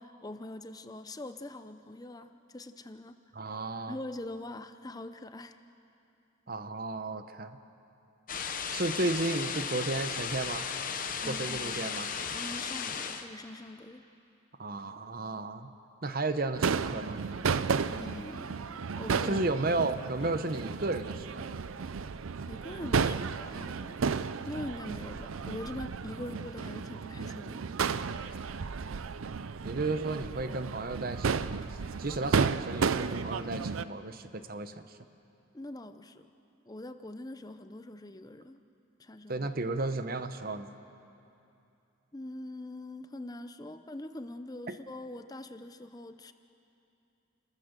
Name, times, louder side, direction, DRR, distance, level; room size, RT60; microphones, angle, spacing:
voice 1, 0.0-3.2 3.9-5.6 11.1-14.0 17.8-19.4 22.5-24.0 24.4-27.7 35.5-36.3 36.7-38.6 39.0-39.5 42.1-46.3, left 1 dB, 20° left, 9 dB, 0.6 m, -43 dB
voice 2, 3.4-4.0 6.5-7.6 8.7-10.7 11.2-12.1 14.6-15.7 16.0-17.2 19.2-21.5 29.6-31.6 32.0-35.0 39.3-40.7, right 2 dB, 45° right, 9 dB, 0.9 m, -33 dB
sound 1, 8.3-13.3, left 6 dB, 40° left, 1.0 m, -35 dB
Crowd / Fireworks, 16.6-33.8, right 5 dB, 80° right, 0.5 m, -33 dB
30.0 x 14.0 x 6.7 m, 2.7 s
head